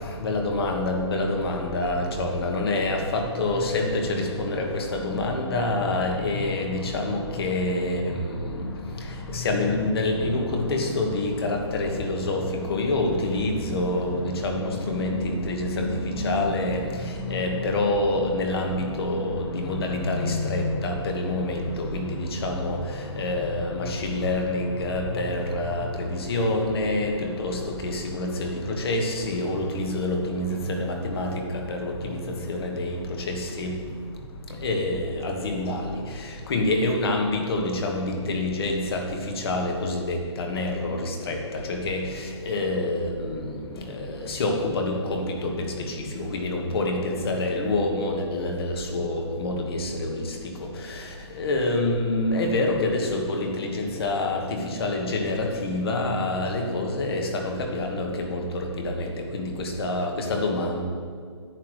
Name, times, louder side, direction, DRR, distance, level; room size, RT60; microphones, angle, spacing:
voice 1, 0.2-8.2 9.3-12.4 12.7-16.8 17.3-22.8 23.2-27.1 27.4-31.4 31.7-31.9 32.5-33.0 33.3-33.7 34.6-35.8 36.5-39.0 39.4-41.4 41.7-42.0 42.5-43.4 44.1-45.6 46.1-50.2 51.4-59.1 59.3-60.8, left 2 dB, 55° left, 3 dB, 1.5 m, -26 dB
10.5 x 9.2 x 3.2 m, 2.2 s
hypercardioid pair, 165°, 15 cm